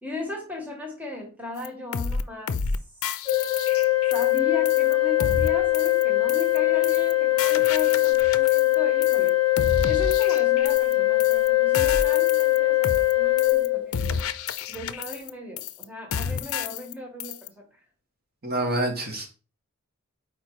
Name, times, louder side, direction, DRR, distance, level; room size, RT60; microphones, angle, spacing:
voice 1, 0.0-2.5 4.1-9.4 9.8-14.0 14.7-17.6, left 2 dB, 5° right, 0 dB, 1.4 m, -37 dB
sound 1, 1.6-1.7 1.9-2.2 2.5-2.8 3.0-4.4 4.7-4.9 5.2-5.5 5.7-6.0 6.3-6.6 6.8-7.1 7.4-8.8 9.0-9.3 9.6-10.9 11.2-11.5 11.7-12.6 12.8-13.1 13.4-13.7 13.9-15.3 15.6-15.8 16.1-16.9 17.2-17.5, left 6 dB, 70° left, 0.5 m, -30 dB
Organ, 3.3-14.3, left 17 dB, 25° left, 1.0 m, -21 dB
voice 2, 18.4-19.3, right 1 dB, 45° right, 2 dB, 1.8 m, -27 dB
5.2 x 4.4 x 4.7 m, 0.34 s
head